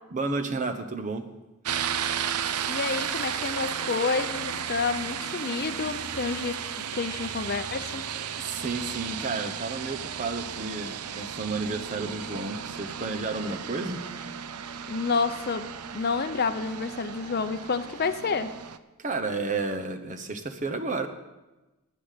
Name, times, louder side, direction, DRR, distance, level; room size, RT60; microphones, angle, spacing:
voice 1, 0.1-1.3 8.1-14.0 19.0-21.1, right 3 dB, 35° right, 6 dB, 0.9 m, -32 dB
sound 1, 1.6-18.8, right 8 dB, 90° right, 0.6 m, -34 dB
voice 2, 2.7-8.1 14.9-15.7 15.9-18.5, left 4 dB, 45° left, 11 dB, 0.6 m, -29 dB
11.0 x 9.2 x 6.7 m, 1.1 s
head